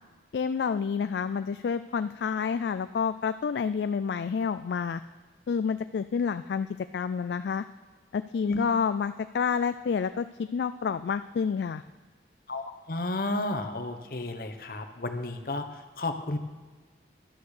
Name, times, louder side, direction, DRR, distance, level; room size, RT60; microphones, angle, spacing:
voice 1, 0.3-5.0 5.5-6.7 6.9-7.6 8.1-11.8, left 6 dB, 70° left, 11 dB, 0.3 m, -29 dB
voice 2, 12.5-16.4, left 2 dB, 55° left, 7 dB, 1.0 m, -32 dB
12.0 x 9.4 x 6.5 m, 1.4 s
head